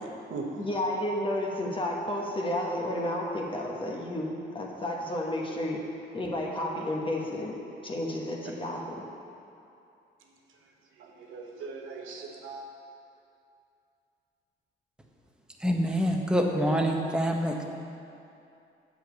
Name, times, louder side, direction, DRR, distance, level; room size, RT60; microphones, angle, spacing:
voice 1, 0.0-0.7 11.0-12.7, right 3 dB, 80° right, 1 dB, 1.1 m, -39 dB
voice 2, 0.6-5.8 6.1-7.6 7.8-9.0, left 1 dB, 25° left, -1 dB, 1.2 m, -31 dB
voice 3, 15.6-17.7, equal, 5° right, 1 dB, 0.9 m, -26 dB
7.6 x 5.0 x 7.0 m, 2.6 s
cardioid pair, 90°, 20 cm